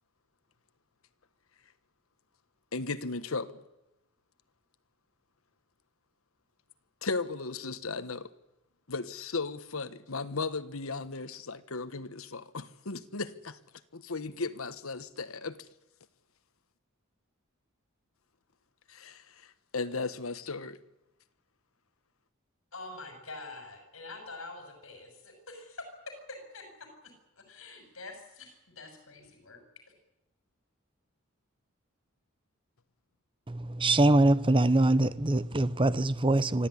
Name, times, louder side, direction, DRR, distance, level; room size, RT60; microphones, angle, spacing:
voice 1, 2.7-3.6 7.0-8.3 8.9-13.6 13.9-15.6 18.9-20.8, left 3 dB, 90° left, 1.4 m, -36 dB
voice 2, 22.7-29.6, left 2 dB, 70° left, 6.4 m, -46 dB
voice 3, 33.5-36.7, right 2 dB, 25° right, 0.8 m, -24 dB
25.0 x 15.0 x 9.9 m
head